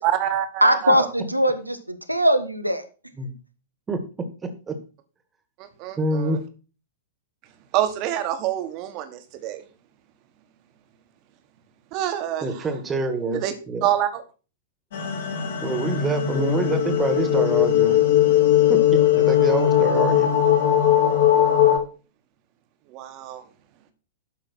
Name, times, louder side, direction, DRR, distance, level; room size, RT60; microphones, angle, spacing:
voice 1, 0.0-1.1 5.6-6.4 7.7-9.6 11.9-12.7 13.3-13.5 13.8-14.2 22.9-23.4, right 11 dB, 35° right, 9 dB, 1.5 m, -26 dB
voice 2, 0.6-2.8, equal, 90° right, 9 dB, 1.1 m, -20 dB
voice 3, 3.9-4.8 6.0-6.4 12.4-13.8 15.6-18.0 18.7-20.3, right 3 dB, 15° right, 8 dB, 1.7 m, -26 dB
sound 1, 14.9-21.8, left 11 dB, 55° left, 3.0 m, -19 dB
12.0 x 5.6 x 4.5 m, 0.35 s
figure-of-eight pair, 100°, 0 cm